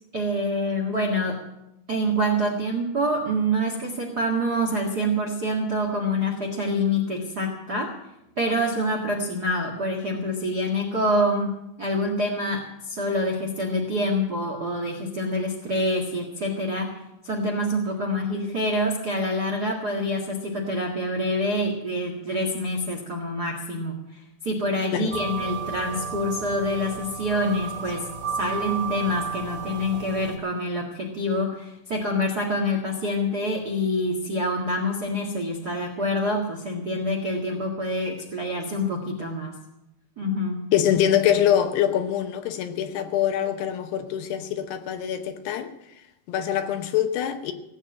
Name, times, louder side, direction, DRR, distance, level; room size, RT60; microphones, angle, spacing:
voice 1, 0.1-1.4 1.9-7.9 8.4-16.9 17.2-28.1 28.3-39.6 40.2-40.6, equal, 85° right, 0.8 m, -26 dB
sound 1, 25.1-30.4, right 6 dB, 15° right, 2.7 m, -33 dB
voice 2, 40.7-45.7 46.3-47.5, left 10 dB, 75° left, 2.8 m, -24 dB
18.0 x 8.3 x 8.8 m
omnidirectional pair, 5.2 m